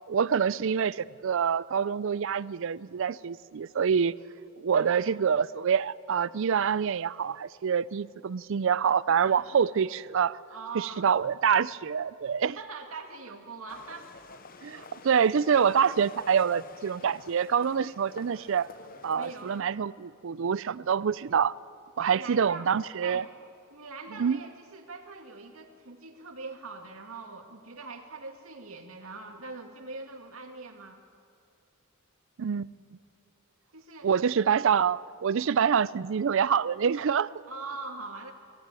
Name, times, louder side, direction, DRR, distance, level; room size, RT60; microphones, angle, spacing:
voice 1, 0.1-4.1 4.6-10.4 10.7-12.6 14.6-18.7 19.0-21.5 22.0-23.2 24.1-24.4 32.4-32.7 34.0-37.3, right 7 dB, 65° right, 20 dB, 0.4 m, -26 dB
voice 2, 4.7-5.0 9.2-9.6 10.5-11.1 12.6-14.1 15.0-15.1 19.1-19.7 22.0-22.7 23.0-23.3 23.7-31.0 33.7-34.1 37.5-38.3, right 4 dB, 85° right, 3 dB, 2.2 m, -42 dB
sound 1, 13.7-19.6, left 4 dB, 45° left, 0.8 m, -49 dB
19.5 x 14.5 x 9.0 m, 2.5 s
head